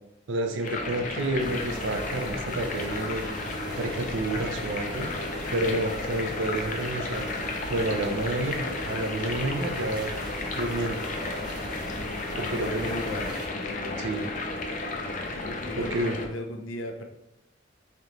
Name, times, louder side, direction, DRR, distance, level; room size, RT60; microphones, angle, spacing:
voice 1, 0.3-3.2 3.8-5.1 5.5-10.1 10.6-11.1 12.4-12.9 14.0-14.3 15.8-16.2, right 1 dB, 75° right, 4 dB, 0.6 m, -30 dB
sound 1, 0.6-16.3, left 2 dB, 40° left, 0.5 m, -33 dB
sound 2, 1.4-13.5, right 1 dB, 25° right, 0.7 m, -40 dB
voice 2, 12.3-14.4 15.3-17.0, left 1 dB, 85° left, 4 dB, 0.6 m, -37 dB
3.3 x 2.9 x 3.8 m, 0.86 s
head